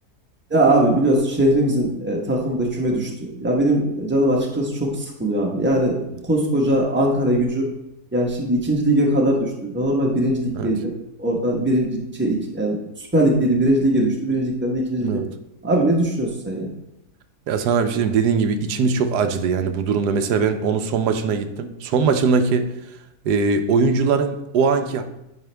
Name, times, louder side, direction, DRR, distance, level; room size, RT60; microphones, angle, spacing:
voice 1, 0.5-6.0 6.2-7.7 8.1-10.9 11.2-12.8 13.1-15.2 15.6-16.7, right 1 dB, 10° right, -1 dB, 1.0 m, -20 dB
voice 2, 15.0-15.3 17.5-22.7 23.2-25.0, right 5 dB, 90° right, 8 dB, 1.3 m, -21 dB
9.3 x 5.2 x 3.4 m, 0.87 s
omnidirectional pair, 1.7 m